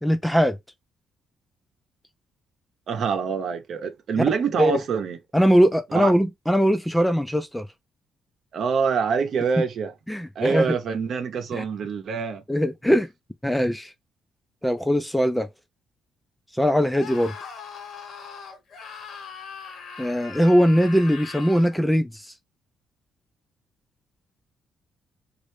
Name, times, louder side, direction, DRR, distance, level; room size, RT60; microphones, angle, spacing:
voice 1, 0.0-0.6 4.6-4.7 5.3-7.7 10.1-10.8 11.5-11.6 12.5-13.1 13.4-13.9 14.6-15.5 16.5-17.3 20.0-22.3, equal, 5° left, 0.4 m, -21 dB
voice 2, 2.9-5.2 5.9-6.1 8.5-9.9 10.4-12.4, right 5 dB, 60° right, 0.8 m, -25 dB
Screaming, 17.0-21.8, left 5 dB, 65° left, 1.2 m, -40 dB
3.2 x 2.6 x 3.2 m
cardioid pair, 90°, 0 cm